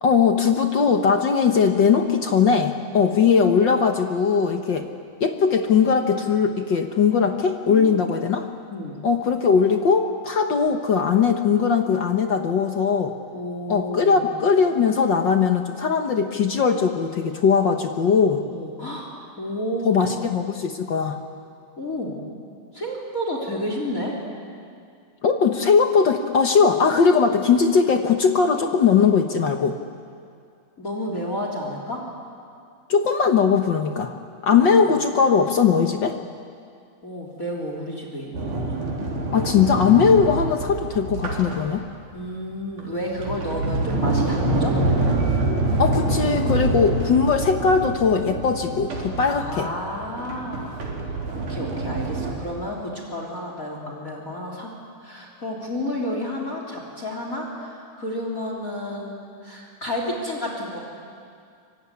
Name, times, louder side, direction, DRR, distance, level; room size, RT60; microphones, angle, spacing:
voice 1, 0.0-4.9 5.2-8.5 9.0-13.1 13.7-18.4 19.8-21.2 25.2-29.8 32.9-34.1 34.4-36.2 39.3-41.9 45.8-49.7, left 6 dB, 60° left, 5 dB, 1.2 m, -19 dB
voice 2, 7.6-8.1 8.7-9.0 13.3-14.3 18.5-19.1 19.4-20.0 21.8-22.2 22.7-24.2 30.8-32.0 34.5-34.8 37.0-38.8 42.1-44.7 49.3-54.7 55.0-60.8, left 1 dB, 25° left, 0 dB, 3.6 m, -31 dB
Sliding door, 38.3-42.1 42.8-52.3, right 2 dB, 80° right, 5.1 m, -26 dB
25.0 x 24.0 x 9.7 m, 2.4 s
omnidirectional pair, 3.6 m